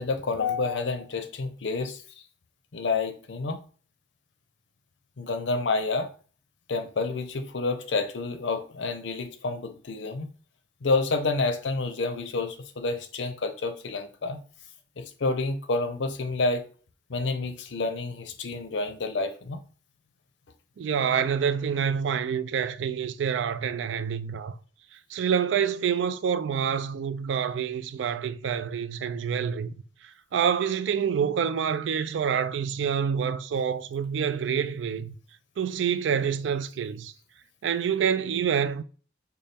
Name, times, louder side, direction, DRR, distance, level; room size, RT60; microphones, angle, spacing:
voice 1, 0.0-2.0 2.7-3.6 5.2-6.1 6.7-10.3 10.8-14.4 15.0-16.6 17.1-19.6, left 3 dB, 80° left, 0.6 m, -29 dB
voice 2, 20.8-24.6 24.9-29.7 30.3-35.1 35.6-37.1 37.6-38.8, right 7 dB, 85° right, 0.3 m, -27 dB
4.1 x 2.3 x 3.3 m
head